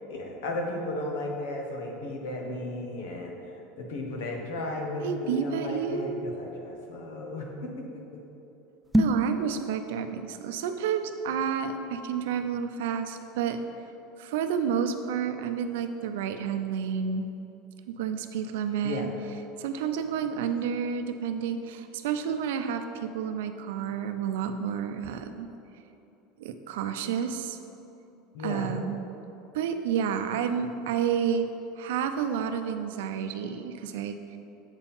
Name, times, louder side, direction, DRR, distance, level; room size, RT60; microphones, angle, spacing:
voice 1, 0.1-8.2 18.8-19.1 28.3-28.8, left 2 dB, 85° left, 1 dB, 1.2 m, -35 dB
voice 2, 5.0-6.3 9.0-13.6 14.2-17.3 17.9-19.1 19.6-25.5 26.4-27.6 28.4-29.0 29.5-31.5 31.8-34.2, right 7 dB, 85° right, 8 dB, 0.5 m, -30 dB
sound 1, 8.8-9.3, right 1 dB, 5° right, 0.3 m, -23 dB
7.9 x 4.5 x 5.5 m, 2.9 s
supercardioid pair, 150°, 0 cm